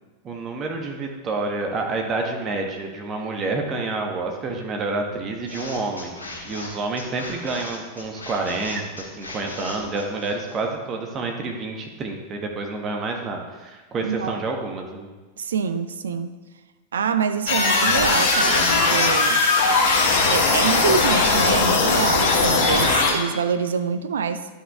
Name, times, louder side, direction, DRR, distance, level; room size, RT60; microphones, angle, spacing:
voice 1, 0.2-6.2 6.5-15.1, right 3 dB, 25° right, 2 dB, 1.3 m, -28 dB
sound 1, 5.5-10.7, left 2 dB, 75° left, 2.3 m, -38 dB
voice 2, 14.0-14.4 15.4-16.3 16.9-19.4 20.3-24.5, right 6 dB, 65° right, 11 dB, 0.5 m, -25 dB
sound 2, 17.5-23.1, left 3 dB, 50° left, 1.8 m, -19 dB
11.5 x 5.4 x 3.6 m, 1.2 s
figure-of-eight pair, 90°, 0 cm